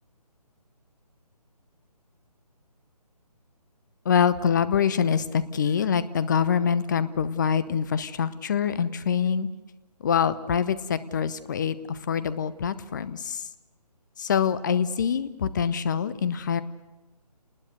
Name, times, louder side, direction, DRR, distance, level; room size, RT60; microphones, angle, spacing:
voice 1, 4.0-9.5 10.0-13.5 14.2-16.6, left 7 dB, 30° left, 15 dB, 0.9 m, -25 dB
28.0 x 20.0 x 6.6 m, 1.1 s
figure-of-eight pair, 145°, 21 cm